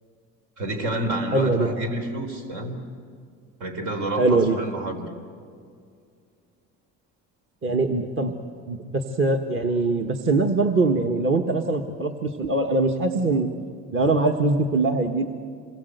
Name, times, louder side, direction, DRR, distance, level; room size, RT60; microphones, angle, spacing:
voice 1, 0.6-2.8 3.6-5.1, right 1 dB, 75° right, 5 dB, 4.0 m, -29 dB
voice 2, 1.3-1.7 4.2-4.6 7.6-8.3 8.7-13.5 13.9-15.3, right 3 dB, 40° right, 4 dB, 1.6 m, -22 dB
27.5 x 21.5 x 8.1 m, 2.3 s
cardioid pair, 115°, 31 cm